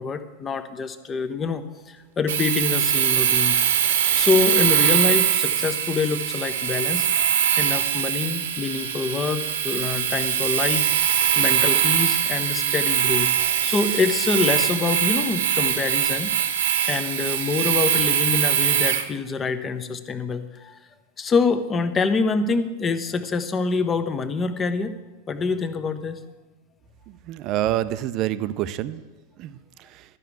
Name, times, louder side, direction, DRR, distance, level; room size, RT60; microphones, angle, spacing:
voice 1, 0.0-16.4 16.9-20.8 21.2-24.9 25.3-26.2, left 4 dB, 20° left, 11 dB, 0.8 m, -26 dB
Domestic sounds home sounds, 2.3-19.1, right 9 dB, 60° right, 1.0 m, -22 dB
voice 2, 27.1-29.0 29.4-29.6 29.9-30.0, right 13 dB, 40° right, 14 dB, 0.5 m, -27 dB
12.5 x 5.8 x 8.0 m, 1.2 s
figure-of-eight pair, 90°, 0 cm